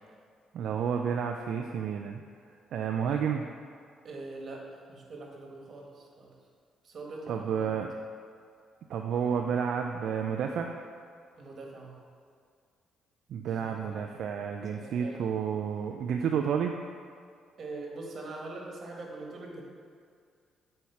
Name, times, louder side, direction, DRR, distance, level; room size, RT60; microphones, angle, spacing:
voice 1, 0.5-2.2 2.7-3.5 7.3-7.9 8.9-10.8 13.3-16.7, right 7 dB, 70° right, 3 dB, 0.4 m, -30 dB
voice 2, 4.0-6.3 6.8-7.9 11.4-12.0 13.4-13.8 14.7-15.3 17.6-19.6, right 2 dB, 50° right, -1 dB, 1.6 m, -43 dB
8.2 x 4.3 x 5.7 m, 2.2 s
cardioid pair, 90°, 0 cm